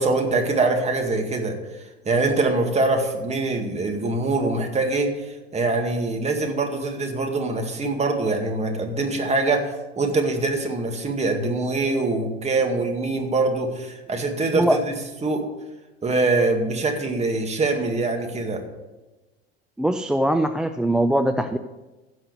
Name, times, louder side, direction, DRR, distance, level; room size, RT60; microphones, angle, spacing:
voice 1, 0.0-1.6 2.0-14.8 15.2-15.5 16.0-18.6, right 3 dB, 20° right, 4 dB, 2.1 m, -23 dB
voice 2, 19.8-21.6, right 1 dB, ahead, 8 dB, 0.3 m, -21 dB
15.5 x 6.4 x 6.6 m, 1.1 s
figure-of-eight pair, 75°, 32 cm